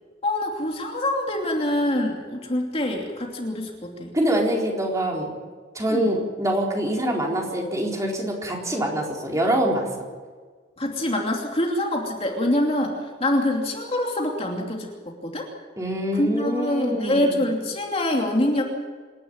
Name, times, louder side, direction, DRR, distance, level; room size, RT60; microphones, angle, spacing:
voice 1, 0.2-4.2 5.9-6.1 10.8-15.5 16.1-18.6, left 1 dB, 30° left, 0 dB, 2.8 m, -25 dB
voice 2, 4.1-5.3 5.7-9.9 15.8-17.4, right 1 dB, 15° right, -1 dB, 4.1 m, -25 dB
27.5 x 11.5 x 9.7 m, 1.5 s
head